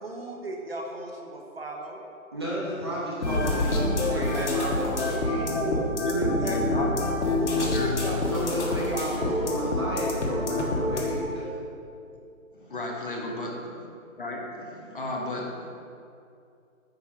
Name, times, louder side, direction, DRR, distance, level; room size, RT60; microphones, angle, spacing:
voice 1, 0.0-2.0 4.1-5.8 6.2-6.9 7.4-9.4, right 2 dB, 45° right, 1 dB, 1.1 m, -37 dB
voice 2, 2.3-5.4 8.3-11.5, equal, 20° right, -6 dB, 1.1 m, -33 dB
sound 1, 3.2-11.2, left 2 dB, 55° left, 1.6 m, -27 dB
voice 3, 5.4-5.8 6.0-6.9 7.5-8.0 12.5-13.6 14.2-15.7, left 1 dB, 40° left, -1 dB, 1.2 m, -33 dB
9.1 x 4.7 x 6.0 m, 2.5 s
hypercardioid pair, 170°, 41 cm